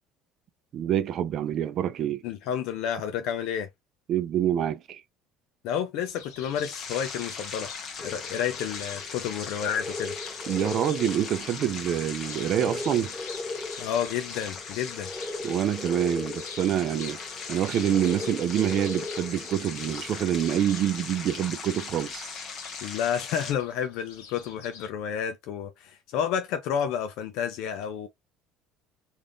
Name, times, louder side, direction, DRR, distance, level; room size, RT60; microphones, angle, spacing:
voice 1, 0.7-2.2 4.1-5.0 10.5-13.1 15.4-17.2 17.5-22.3, right 10 dB, 55° right, 0.4 m, -26 dB
voice 2, 2.2-3.7 5.6-7.7 8.0-10.1 13.8-15.1 22.8-28.1, left 8 dB, 70° left, 0.5 m, -30 dB
sound 1, 6.0-24.9, left 6 dB, 85° left, 0.9 m, -48 dB
sound 2, 6.5-23.5, left 5 dB, 50° left, 1.0 m, -39 dB
sound 3, 8.0-21.2, left 3 dB, 15° left, 0.8 m, -39 dB
3.4 x 2.5 x 2.5 m
supercardioid pair, 85°, 0 cm